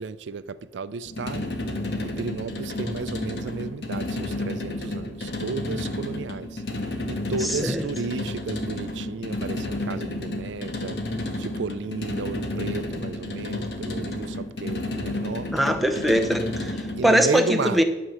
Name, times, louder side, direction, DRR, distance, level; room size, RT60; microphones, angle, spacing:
voice 1, 0.0-1.5 2.0-11.0 11.4-15.5 17.0-17.8, right 4 dB, 90° right, 0.4 m, -33 dB
sound 1, 1.1-17.2, left 2 dB, 70° left, 1.4 m, -31 dB
voice 2, 7.4-7.8 15.5-17.8, equal, ahead, 0.7 m, -22 dB
11.5 x 5.9 x 6.5 m
head